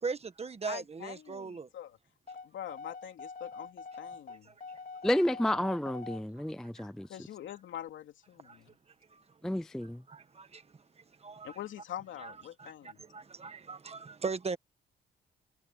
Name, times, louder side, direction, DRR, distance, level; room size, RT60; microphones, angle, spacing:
voice 1, 0.0-1.7 4.3-4.5 6.8-6.9 8.4-8.6 9.1-9.2 10.1-10.6 11.0-11.6 12.2-12.3 12.6-14.6, right 4 dB, 30° right, 1.5 m, -39 dB
voice 2, 0.6-2.0 2.4-4.5 7.1-8.7 11.4-13.0, left 11 dB, 75° left, 2.9 m, -44 dB
sound 1, 2.3-6.2, left 4 dB, 45° left, 2.1 m, -45 dB
voice 3, 5.0-7.1 9.4-10.0, left 1 dB, 5° left, 0.3 m, -30 dB
cardioid pair, 90°, 20 cm